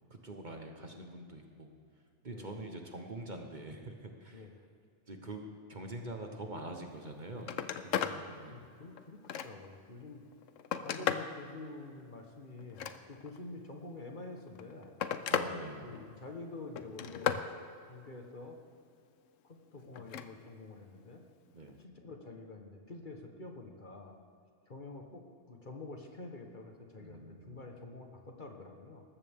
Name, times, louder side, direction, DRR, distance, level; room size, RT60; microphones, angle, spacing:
voice 1, 0.1-1.7 2.2-4.5 5.1-5.4 5.7-7.5 7.8-8.6 15.3-15.9 21.5-21.8 27.0-27.7, right 2 dB, 40° right, 3 dB, 1.2 m, -45 dB
voice 2, 4.3-4.7 8.0-10.2 10.8-15.0 15.8-17.6 17.9-18.6 19.4-21.2 21.8-24.2 24.7-29.0, left 2 dB, 40° left, 3 dB, 1.4 m, -48 dB
Telephone, 7.0-7.1 7.4-8.2 8.7-9.8 10.3-11.3 12.6-13.4 14.4-15.5 15.9-16.3 16.8-17.5 19.9-20.3 21.7-21.8, left 8 dB, 85° left, 1.1 m, -35 dB
19.0 x 14.5 x 3.6 m, 2.4 s
omnidirectional pair, 1.3 m